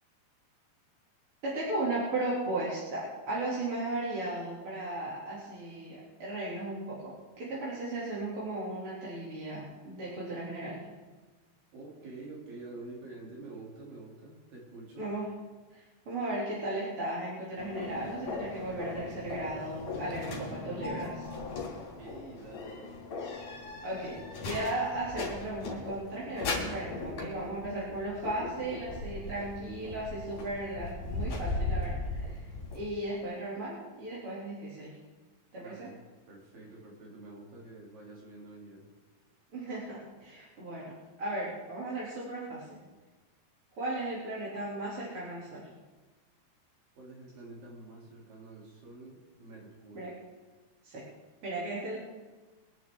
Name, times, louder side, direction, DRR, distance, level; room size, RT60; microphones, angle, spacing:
voice 1, 1.4-10.8 15.0-15.3 15.7-21.1 23.8-32.4 32.7-35.0 35.5-35.9 39.5-42.8 43.8-45.7 49.9-50.1 50.8-51.0 51.4-52.0, right 2 dB, 35° right, -8 dB, 3.4 m, -36 dB
voice 2, 11.7-15.1 21.5-23.2 35.6-38.9 46.9-50.2, right 2 dB, 60° right, -3 dB, 4.8 m, -48 dB
sound 1, 17.6-32.9, left 3 dB, 55° left, 4.3 m, -38 dB
23.5 x 10.5 x 3.8 m, 1.3 s
omnidirectional pair, 4.5 m